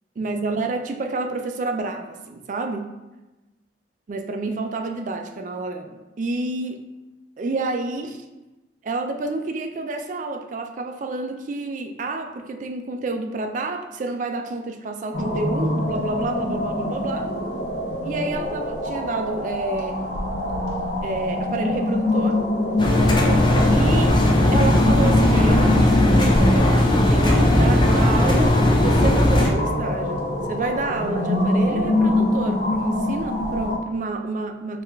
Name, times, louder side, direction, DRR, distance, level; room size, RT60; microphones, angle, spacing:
voice 1, 0.2-2.9 4.1-6.8 7.4-8.2 8.8-17.3 18.0-20.1 21.0-22.4 23.7-24.1 24.5-34.8, right 3 dB, 45° right, 6 dB, 0.3 m, -29 dB
sound 1, 15.1-33.8, left 1 dB, 80° left, 0.7 m, -24 dB
Engine, 22.8-29.5, left 1 dB, 25° left, 0.4 m, -17 dB
4.8 x 2.3 x 3.4 m, 1.1 s
head